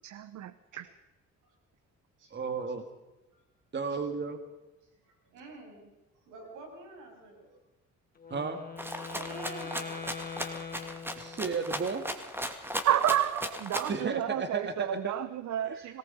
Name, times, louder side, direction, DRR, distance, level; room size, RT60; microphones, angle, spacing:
voice 1, 0.0-0.8 12.8-16.0, right 11 dB, 65° right, 15 dB, 0.9 m, -30 dB
voice 2, 2.3-2.9 3.7-4.4 8.3-8.6 11.2-12.0 13.9-15.2 15.6-16.0, right 4 dB, 35° right, 7 dB, 2.2 m, -34 dB
voice 3, 4.9-5.9 6.1-7.6 9.1-10.0 12.9-13.4 15.9-16.0, right 3 dB, 85° right, 1 dB, 7.8 m, -47 dB
Wind instrument woodwind instrument, 8.1-11.8, left 6 dB, 30° left, 4.2 m, -42 dB
Rattle (instrument), 8.8-14.0, equal, 5° right, 2.7 m, -37 dB
26.0 x 18.5 x 5.5 m, 1.1 s
cardioid pair, 90°, 30 cm